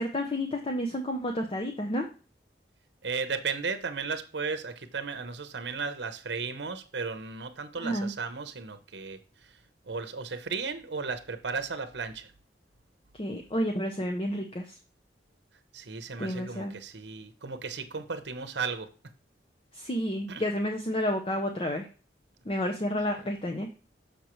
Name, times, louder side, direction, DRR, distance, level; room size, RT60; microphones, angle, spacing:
voice 1, 0.0-2.1 7.8-8.1 13.1-14.8 16.2-16.7 19.7-21.9 22.5-23.8, equal, 30° left, 3 dB, 0.6 m, -30 dB
voice 2, 3.0-9.6 9.9-12.3 15.7-18.9 20.3-20.4, right 5 dB, 75° right, 10 dB, 0.8 m, -35 dB
6.6 x 6.3 x 3.0 m, 0.35 s
head